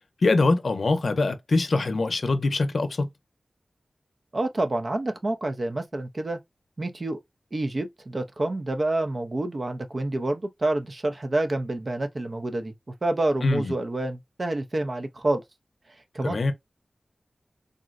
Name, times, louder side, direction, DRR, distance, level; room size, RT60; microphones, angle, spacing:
voice 1, 0.2-3.1 13.4-13.7 16.2-16.5, left 3 dB, 75° left, 0.5 m, -23 dB
voice 2, 4.3-6.4 6.8-7.2 7.5-12.7 13.0-15.4 16.1-16.5, right 2 dB, 45° right, 0.5 m, -28 dB
3.6 x 2.0 x 2.4 m
wide cardioid pair, 95°, 0 cm